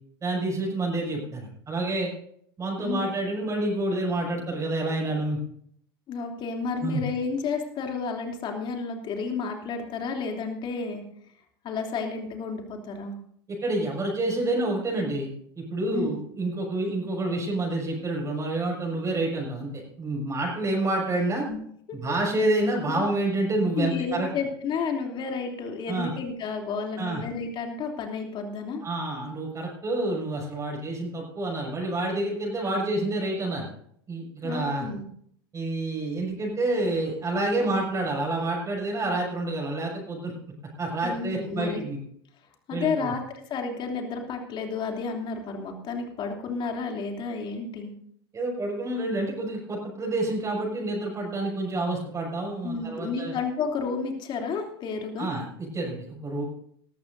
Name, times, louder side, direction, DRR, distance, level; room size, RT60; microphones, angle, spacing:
voice 1, 0.2-2.1 2.6-5.4 6.8-7.0 13.5-15.3 15.6-21.5 21.9-24.3 25.9-26.1 27.0-27.2 28.8-33.7 34.1-34.9 35.5-40.3 40.8-42.0 42.7-43.1 48.3-53.4 55.2-56.4, right 2 dB, 25° right, -2 dB, 6.2 m, -28 dB
voice 2, 2.8-3.1 6.1-11.0 11.6-13.2 15.9-16.2 21.5-21.6 21.9-22.1 22.9-23.0 23.7-28.8 34.4-35.0 41.0-41.8 42.7-47.9 52.6-55.3, left 5 dB, 40° left, 2 dB, 3.0 m, -31 dB
19.5 x 14.0 x 2.7 m, 0.66 s
hypercardioid pair, 90°, 13 cm